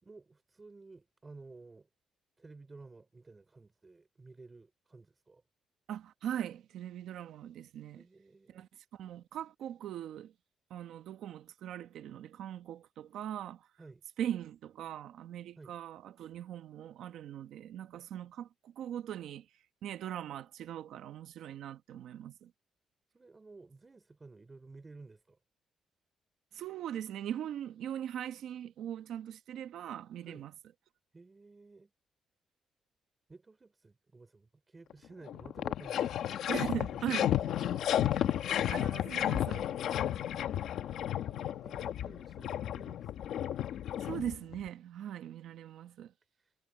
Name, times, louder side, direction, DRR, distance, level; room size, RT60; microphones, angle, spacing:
voice 1, 0.0-1.9 2.4-5.4 7.9-8.7 13.8-14.0 15.6-15.7 23.1-25.4 30.2-30.5 31.1-31.9 33.3-36.4 36.9-38.1 41.3-43.4 46.3-46.5, right 3 dB, 20° right, 4.2 m, -54 dB
voice 2, 5.9-8.0 8.5-10.3 10.7-13.7 14.2-19.5 19.8-22.5 26.5-30.5 36.5-37.3 38.7-39.7 44.0-46.1, right 10 dB, 80° right, 1.1 m, -40 dB
sound 1, 34.9-35.0 35.3-44.7, left 11 dB, 75° left, 1.1 m, -33 dB
cardioid pair, 170°, 0 cm